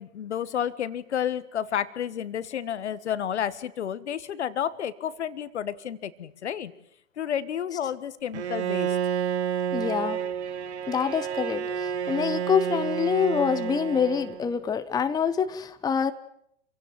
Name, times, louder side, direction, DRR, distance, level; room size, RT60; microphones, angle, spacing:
voice 1, 0.0-6.7 7.2-9.0, left 9 dB, 60° left, 16 dB, 1.6 m, -31 dB
Bowed string instrument, 8.3-14.6, right 8 dB, 60° right, 1.2 m, -30 dB
voice 2, 9.7-10.2 10.9-16.1, left 7 dB, 10° left, 11 dB, 1.0 m, -26 dB
27.5 x 17.0 x 9.4 m, 0.72 s
figure-of-eight pair, 105°, 38 cm